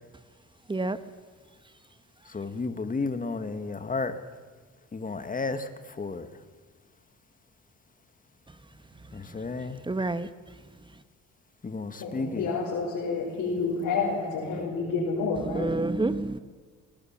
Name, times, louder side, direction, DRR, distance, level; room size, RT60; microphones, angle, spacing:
voice 1, 2.3-4.2 4.9-6.3 9.1-9.8 11.6-12.5, left 3 dB, 25° left, 1.6 m, -32 dB
voice 2, 9.8-10.3 15.4-16.4, right 2 dB, 15° right, 1.1 m, -28 dB
voice 3, 12.0-15.7, left 4 dB, 80° left, 5.1 m, -29 dB
23.5 x 17.5 x 7.3 m
cardioid pair, 90°, 30 cm